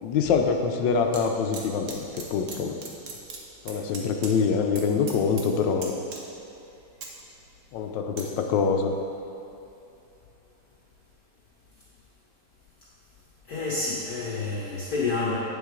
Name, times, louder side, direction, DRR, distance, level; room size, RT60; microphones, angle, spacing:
voice 1, 0.0-2.8 3.6-5.9 7.7-8.9, left 5 dB, 75° left, 5 dB, 1.2 m, -25 dB
sound 1, 0.8-1.2 1.5-2.6 2.8-4.3 4.6-4.8 5.1-5.5 5.8-6.5 6.8-8.2 8.7-8.9, right 4 dB, 50° right, 1.0 m, -39 dB
voice 2, 13.5-15.4, left 3 dB, 55° left, -7 dB, 1.6 m, -28 dB
8.5 x 7.1 x 3.7 m, 2.7 s
omnidirectional pair, 2.2 m